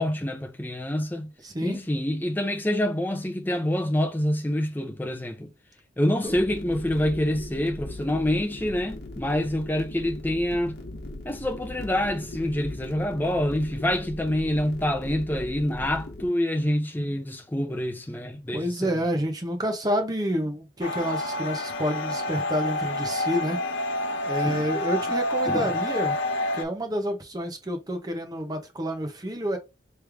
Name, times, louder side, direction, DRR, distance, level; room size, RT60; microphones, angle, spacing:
voice 1, 0.0-1.3 1.6-5.5 6.0-10.8 11.2-19.0 24.4-24.7 25.5-25.7, left 1 dB, 10° left, 0.7 m, -26 dB
voice 2, 1.4-1.8 6.2-6.3 18.5-23.6 24.2-26.2 26.5-29.6, equal, 20° right, 0.9 m, -29 dB
sound 1, 6.3-16.3, left 1 dB, 60° left, 1.1 m, -39 dB
sound 2, 20.8-26.6, left 1 dB, 90° left, 0.6 m, -28 dB
3.3 x 3.2 x 3.4 m
head